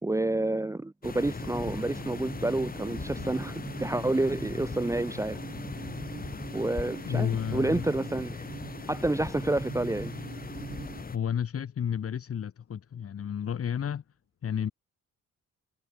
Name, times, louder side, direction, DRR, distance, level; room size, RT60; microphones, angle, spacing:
voice 1, 0.0-5.4 6.5-8.3 8.9-10.1, right 2 dB, 10° right, 0.8 m, -29 dB
sound 1, 1.0-11.2, left 4 dB, 30° left, 3.0 m, -39 dB
sound 2, 1.4-11.0, right 5 dB, 35° right, 1.7 m, -42 dB
voice 2, 7.0-7.8 11.1-14.0 14.4-14.7, left 8 dB, 50° left, 2.2 m, -31 dB
cardioid pair, 90°, 30 cm